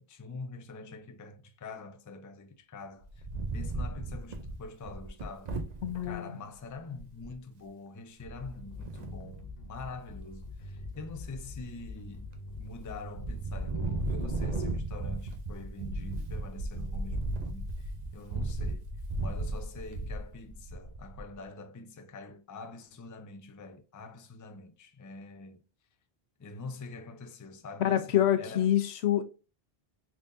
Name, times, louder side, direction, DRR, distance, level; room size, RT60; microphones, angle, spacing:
voice 1, 0.0-3.1 3.5-5.5 6.0-12.3 12.6-18.9 19.2-25.6 26.4-28.7, left 3 dB, 30° left, 0.3 m, -45 dB
Wind, 3.0-6.1 6.7-6.8 7.0-7.3 8.8-9.4 9.9-10.4 10.7-11.9 12.4-12.8 13.1-21.3, right 2 dB, 50° right, 0.7 m, -35 dB
voice 2, 5.8-6.4 27.8-29.2, left 11 dB, 90° left, 0.9 m, -26 dB
sound 1, 8.2-14.0, left 2 dB, 50° left, 0.7 m, -45 dB
3.7 x 3.5 x 2.5 m
omnidirectional pair, 1.1 m